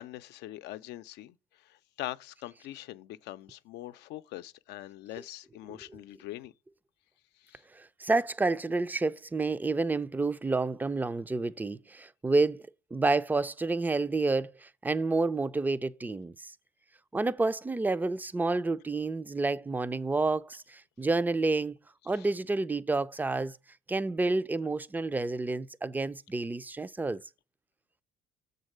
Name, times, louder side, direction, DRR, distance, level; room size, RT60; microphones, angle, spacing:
voice 1, 0.0-1.4 1.6-6.5 7.4-7.6 22.2-22.3, left 15 dB, 85° left, 0.5 m, -43 dB
voice 2, 7.7-16.5 17.1-21.8 22.1-23.6 23.9-27.2, right 3 dB, 10° right, 0.4 m, -29 dB
7.2 x 3.9 x 6.5 m
cardioid pair, 110°, 17 cm